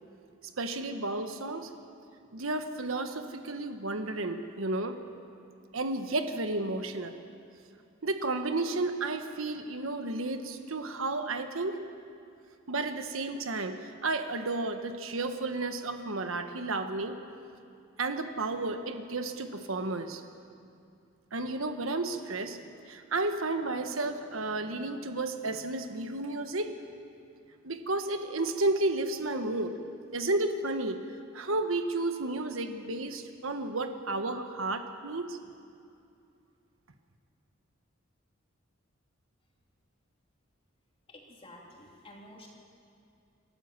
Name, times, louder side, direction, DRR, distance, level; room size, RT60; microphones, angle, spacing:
voice 1, 0.6-1.7 2.3-5.0 5.7-7.1 8.0-11.8 12.7-17.2 18.0-20.2 21.3-22.6 22.9-26.7 27.6-29.8 30.1-31.0 31.3-35.4, right 2 dB, 85° right, 7 dB, 1.3 m, -32 dB
voice 2, 41.1-42.5, left 1 dB, 30° left, -1 dB, 3.2 m, -51 dB
28.0 x 13.0 x 7.5 m, 2.5 s
head